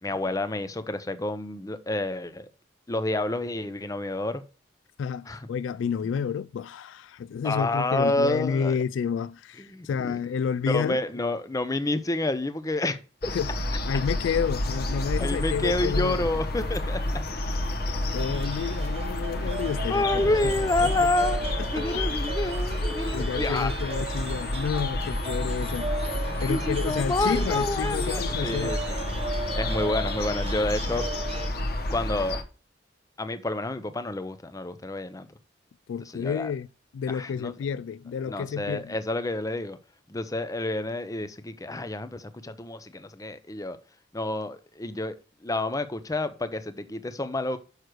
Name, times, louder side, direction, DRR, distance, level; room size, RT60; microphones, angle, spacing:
voice 1, 0.0-2.5 2.9-4.4 5.3-5.5 7.4-8.8 9.6-10.2 10.7-13.3 15.2-17.0 19.9-21.4 21.7-23.7 26.5-28.8 29.5-31.0 31.9-32.4 33.2-35.3 36.1-36.5 37.1-37.5 38.3-39.8 40.1-43.8 44.1-45.2 45.4-47.6, left 2 dB, 20° left, 0.6 m, -29 dB
voice 2, 5.0-11.0 13.3-13.5 13.9-16.3 17.9-21.1 21.6-22.0 23.1-25.9 26.4-28.8 35.9-36.7 36.9-39.0, left 6 dB, 85° left, 0.3 m, -30 dB
sound 1, 13.2-32.4, left 1 dB, 55° left, 1.0 m, -30 dB
sound 2, 18.1-31.5, right 3 dB, 35° right, 0.8 m, -37 dB
6.5 x 6.3 x 4.6 m
head